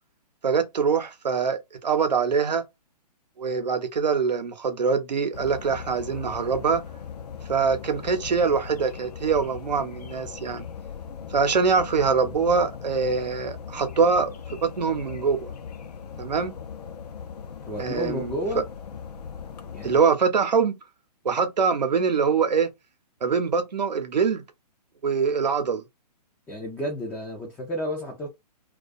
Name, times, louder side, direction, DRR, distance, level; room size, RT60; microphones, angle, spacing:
voice 1, 0.4-2.6 3.4-6.8 7.5-10.7 11.3-14.3 14.6-15.5 16.2-16.5 17.8-18.3 19.8-20.8 21.2-22.7 23.2-24.4 25.0-25.8, right 5 dB, 90° right, 0.7 m, -24 dB
sound 1, 5.3-20.0, left 7 dB, 70° left, 0.6 m, -39 dB
voice 2, 17.7-18.6 19.7-19.9 26.5-28.3, equal, 5° left, 0.3 m, -31 dB
2.3 x 2.2 x 2.5 m
hypercardioid pair, 140°, 21 cm